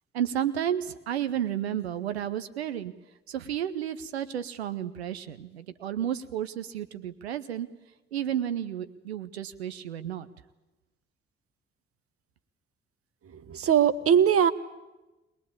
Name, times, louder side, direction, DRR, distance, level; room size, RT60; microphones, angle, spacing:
voice 1, 0.1-2.9 3.3-7.7 8.1-10.3, right 10 dB, 85° right, 13 dB, 0.8 m, -32 dB
voice 2, 13.5-14.5, right 8 dB, 45° right, 14 dB, 1.2 m, -20 dB
21.5 x 20.5 x 8.6 m, 1.1 s
figure-of-eight pair, 40°, 31 cm